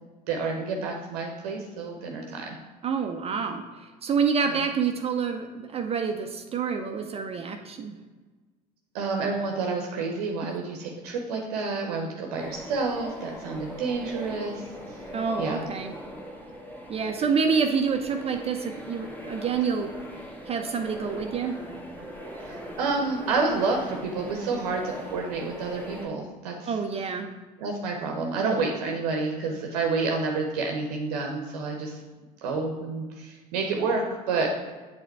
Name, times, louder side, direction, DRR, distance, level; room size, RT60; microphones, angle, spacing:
voice 1, 0.3-2.6 4.5-4.6 8.9-14.7 15.3-15.6 22.4-26.7 27.6-32.0 32.4-34.6, right 4 dB, 65° right, 1 dB, 0.8 m, -29 dB
voice 2, 2.8-3.6 4.0-7.9 15.1-15.9 16.9-19.9 20.5-21.6 26.7-27.3, right 6 dB, 30° right, 5 dB, 0.6 m, -27 dB
sound 1, 12.4-26.1, equal, 10° left, 1.4 m, -41 dB
7.9 x 3.5 x 4.6 m, 1.3 s
figure-of-eight pair, 65°, 21 cm